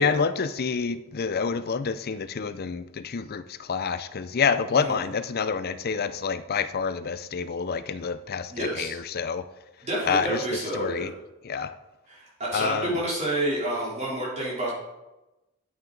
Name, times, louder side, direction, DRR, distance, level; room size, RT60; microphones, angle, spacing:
voice 1, 0.0-9.4 10.0-10.4 10.7-11.1 11.4-11.7 12.5-13.0, left 5 dB, 45° left, 12 dB, 0.5 m, -28 dB
voice 2, 8.5-9.0 9.8-11.1 12.1-14.8, right 1 dB, 30° right, -5 dB, 3.3 m, -29 dB
9.3 x 8.7 x 3.9 m, 1.0 s
head